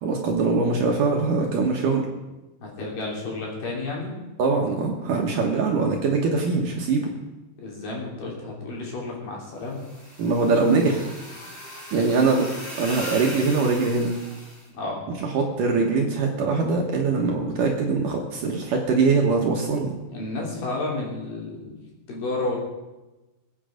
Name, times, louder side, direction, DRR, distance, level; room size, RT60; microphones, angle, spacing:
voice 1, 0.0-2.1 4.4-7.1 10.2-11.1 11.9-12.5 12.8-14.1 15.2-19.9, right 4 dB, 65° right, 1 dB, 2.5 m, -22 dB
voice 2, 2.6-4.1 7.6-9.8 14.7-15.0 20.1-22.6, left 2 dB, 55° left, -2 dB, 4.7 m, -31 dB
sound 1, 9.7-14.6, equal, 25° left, 4.8 m, -38 dB
21.5 x 8.9 x 5.1 m, 1.1 s
omnidirectional pair, 4.8 m